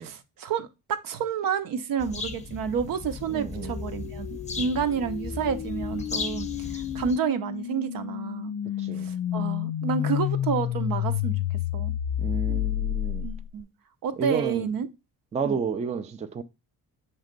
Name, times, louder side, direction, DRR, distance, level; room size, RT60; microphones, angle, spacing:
voice 1, 0.0-6.5 6.9-8.5 9.0-11.4 11.7-11.9 12.5-12.6 13.2-13.7 14.0-14.9 15.4-15.6, right 7 dB, 70° right, 0.8 m, -30 dB
sound 1, 2.0-7.2, left 4 dB, 20° left, 0.6 m, -36 dB
voice 2, 3.3-3.8 8.8-9.1 12.2-13.3 14.2-14.7 15.3-16.4, right 6 dB, 20° right, 0.4 m, -31 dB
sound 2, 3.6-13.6, left 12 dB, 70° left, 0.5 m, -30 dB
6.2 x 3.2 x 5.1 m
cardioid pair, 140°, 35 cm